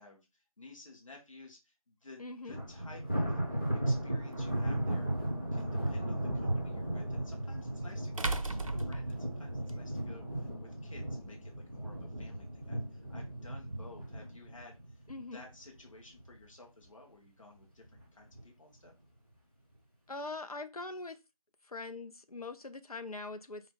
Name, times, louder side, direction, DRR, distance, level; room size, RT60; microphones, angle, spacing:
voice 1, 0.0-3.4 3.7-5.1 5.5-15.0 15.3-18.9, left 2 dB, 60° left, 1.4 m, -54 dB
voice 2, 2.2-2.6 15.1-15.4 20.1-21.2 21.7-23.6, left 3 dB, 75° left, 0.7 m, -42 dB
Thunder, 2.5-15.8 16.2-16.5 16.9-17.0 17.8-18.4, right 1 dB, 15° left, 0.7 m, -36 dB
sound 1, 4.3-4.4 7.0-7.1 8.2-9.8, right 3 dB, 60° right, 0.5 m, -36 dB
4.7 x 2.1 x 3.8 m
figure-of-eight pair, 165°, 19 cm